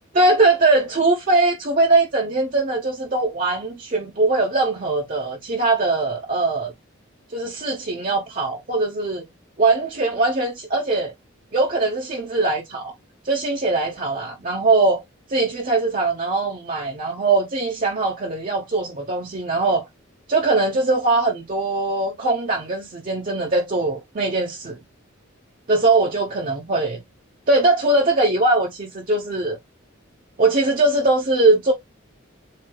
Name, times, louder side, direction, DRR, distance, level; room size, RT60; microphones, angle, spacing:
voice 1, 0.1-6.7 7.3-9.2 9.6-11.1 11.5-12.9 13.2-15.0 15.3-19.9 20.3-24.8 25.7-27.0 27.5-29.6 30.4-31.7, right 2 dB, 40° right, 0.8 m, -21 dB
7.6 x 2.6 x 2.3 m
head